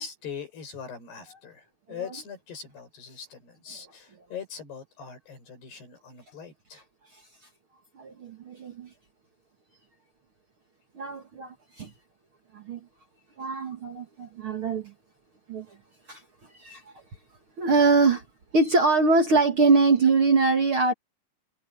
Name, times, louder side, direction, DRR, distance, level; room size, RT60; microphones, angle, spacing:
voice 1, 0.0-6.8, left 7 dB, 60° left, 8.5 m, -41 dB
voice 2, 8.0-8.9 10.9-11.9 12.5-12.8 13.4-14.9 15.5-15.6 16.1-16.2 16.6-16.8 17.6-18.2 18.5-20.9, right 3 dB, 65° right, 1.3 m, -23 dB
omnidirectional pair, 5.3 m